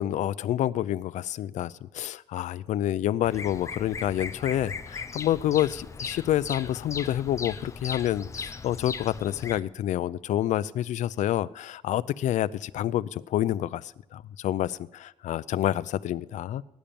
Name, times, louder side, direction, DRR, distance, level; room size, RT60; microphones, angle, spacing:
voice 1, 0.0-16.6, left 12 dB, 85° left, 17 dB, 0.5 m, -28 dB
Bird vocalization bird call bird song, 3.2-9.6, left 5 dB, 25° left, 0.7 m, -38 dB
19.0 x 10.5 x 7.0 m, 0.91 s
cardioid pair, 155°, 12 cm